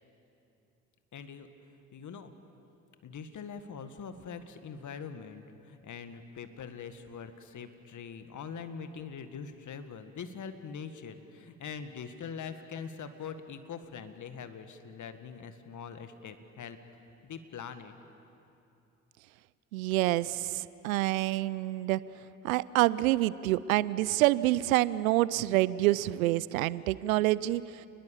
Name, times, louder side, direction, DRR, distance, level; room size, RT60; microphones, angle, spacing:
voice 1, 1.1-2.3 3.0-16.8 17.2-17.9, left 6 dB, 45° left, 9 dB, 1.9 m, -43 dB
voice 2, 19.7-20.4 20.8-22.0 22.4-27.6, right 16 dB, 80° right, 20 dB, 0.6 m, -27 dB
29.0 x 21.0 x 7.2 m, 2.8 s
hypercardioid pair, 55°, 41 cm